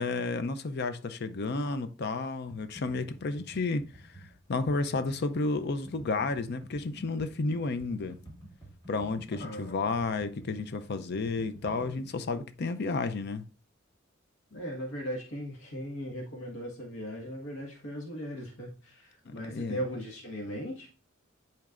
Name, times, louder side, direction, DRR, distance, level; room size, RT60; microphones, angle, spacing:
voice 1, 0.0-3.8 4.1-8.2 8.9-13.4 19.3-19.8, left 3 dB, 55° left, 0.5 m, -32 dB
Computer keyboard, 2.5-11.9, right 1 dB, 20° left, 2.6 m, -50 dB
voice 2, 9.4-9.7 14.5-20.9, equal, 85° left, 1.7 m, -38 dB
10.5 x 4.5 x 2.5 m
head